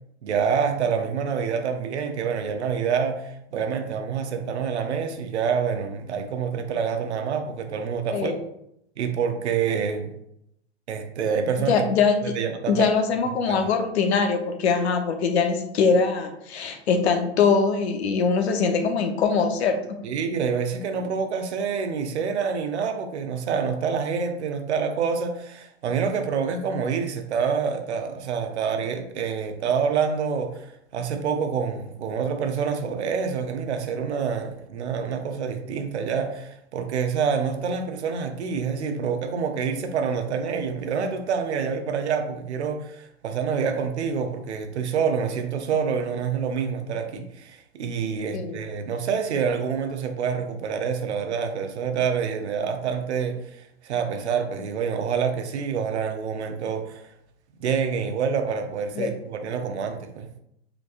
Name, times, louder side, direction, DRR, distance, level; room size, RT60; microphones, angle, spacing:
voice 1, 0.2-8.4 9.0-10.1 10.9-11.8 12.3-12.9 13.5-13.7 20.0-57.0 57.6-60.3, right 6 dB, 85° right, 6 dB, 0.7 m, -27 dB
voice 2, 11.7-12.3 12.7-20.0 48.3-48.6 59.0-59.1, left 5 dB, 75° left, 6 dB, 0.8 m, -22 dB
5.0 x 3.3 x 2.4 m, 0.77 s
hypercardioid pair, 105°, 33 cm